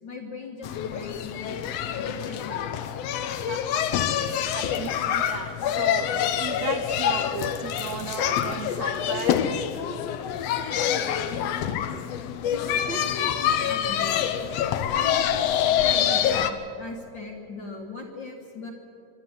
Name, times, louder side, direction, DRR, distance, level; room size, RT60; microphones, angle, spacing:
voice 1, 0.0-1.6 2.0-2.8 12.5-14.4 14.9-16.5 16.8-18.7, left 2 dB, 45° left, 2 dB, 1.8 m, -39 dB
sound 1, 0.6-16.5, left 9 dB, 80° left, 1.4 m, -26 dB
voice 2, 3.4-6.1 6.4-9.4 9.7-9.8 11.9-12.0, right 7 dB, 75° right, 7 dB, 1.5 m, -37 dB
25.0 x 12.0 x 9.7 m, 2.5 s
omnidirectional pair, 4.0 m